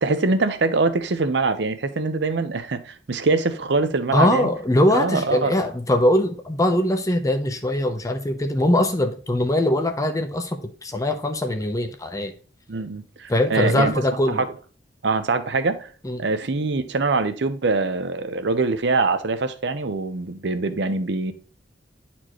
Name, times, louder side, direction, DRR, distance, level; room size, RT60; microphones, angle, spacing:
voice 1, 0.0-4.5 4.9-5.7 12.7-13.9 14.3-14.5 15.0-15.9 16.2-21.3, right 3 dB, 65° right, 0.6 m, -23 dB
voice 2, 4.1-12.3 13.3-14.4 16.0-16.2, left 1 dB, 20° left, 0.7 m, -21 dB
9.6 x 4.3 x 3.0 m
head